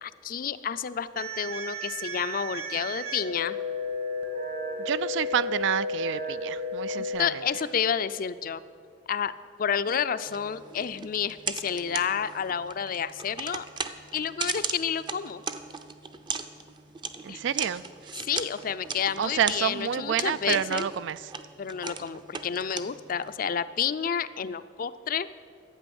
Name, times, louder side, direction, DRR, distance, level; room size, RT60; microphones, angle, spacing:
voice 1, 0.0-3.6 6.9-8.6 9.1-9.3 9.6-13.6 14.1-15.4 17.3-17.4 18.3-20.9 21.6-25.3, left 7 dB, 50° left, 14 dB, 0.4 m, -30 dB
sound 1, 1.2-7.2, left 1 dB, 60° right, 1.9 m, -33 dB
voice 2, 4.8-7.4 17.2-18.1 19.2-21.3, right 8 dB, 80° right, 16 dB, 0.4 m, -29 dB
sound 2, 10.3-23.4, right 5 dB, 25° right, 0.5 m, -38 dB
12.0 x 8.3 x 7.0 m, 2.2 s
head